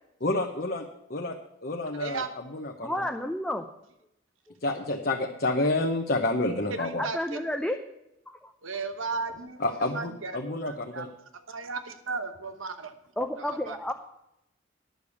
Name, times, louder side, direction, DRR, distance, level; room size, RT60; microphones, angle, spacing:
voice 1, 0.2-1.4 1.6-3.1 4.6-7.1 9.6-11.1, left 2 dB, 50° left, 1 dB, 1.0 m, -29 dB
voice 2, 2.8-3.7 7.0-7.8 8.3-8.5 13.2-13.9, left 1 dB, 5° left, 3 dB, 0.6 m, -31 dB
voice 3, 8.6-9.6 9.9-10.3 10.6-11.1 11.5-12.9 13.7-13.8, right 4 dB, 85° right, 9 dB, 1.0 m, -34 dB
10.5 x 6.8 x 8.3 m, 0.84 s
head